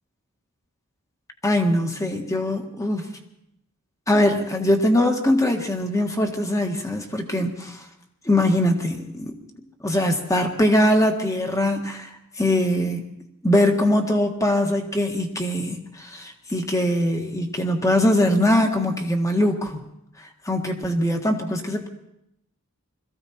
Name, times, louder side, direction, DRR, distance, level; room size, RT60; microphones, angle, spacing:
voice 1, 1.4-3.1 4.1-7.8 8.2-9.4 9.8-12.1 12.4-13.0 13.4-19.8 20.4-21.9, left 1 dB, 15° left, 4 dB, 1.6 m, -22 dB
21.5 x 15.0 x 4.3 m, 0.79 s
head